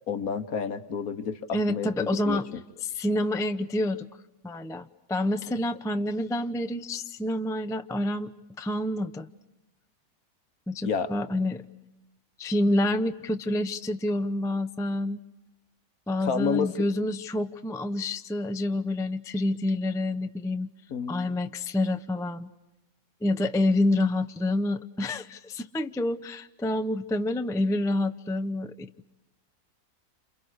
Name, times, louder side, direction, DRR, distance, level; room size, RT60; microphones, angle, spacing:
voice 1, 0.1-2.6 10.8-11.1 16.2-16.7 20.9-21.2, left 6 dB, 70° left, 11 dB, 1.6 m, -30 dB
voice 2, 1.5-2.5 2.8-4.1 4.4-8.3 8.6-9.3 10.7-11.6 12.4-15.2 16.1-20.7 21.1-22.5 23.2-29.1, left 1 dB, 5° left, 9 dB, 0.4 m, -28 dB
29.0 x 28.0 x 6.3 m, 0.95 s
omnidirectional pair, 1.6 m